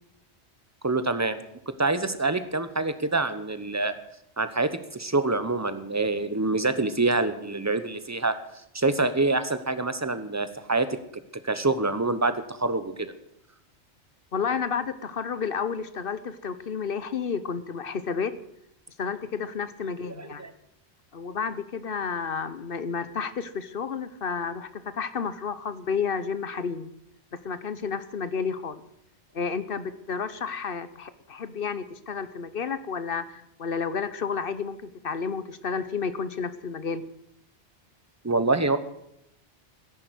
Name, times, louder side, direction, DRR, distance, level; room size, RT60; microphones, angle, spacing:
voice 1, 0.8-1.4 1.7-4.0 4.4-8.4 8.7-11.0 11.4-13.1 20.1-20.5 38.2-38.8, right 3 dB, 15° right, 11 dB, 1.0 m, -26 dB
voice 2, 14.3-18.3 19.0-20.4 21.1-26.9 27.3-28.8 29.3-37.0, left 6 dB, 55° left, 14 dB, 1.1 m, -31 dB
14.0 x 10.5 x 8.2 m, 0.78 s
omnidirectional pair, 1.2 m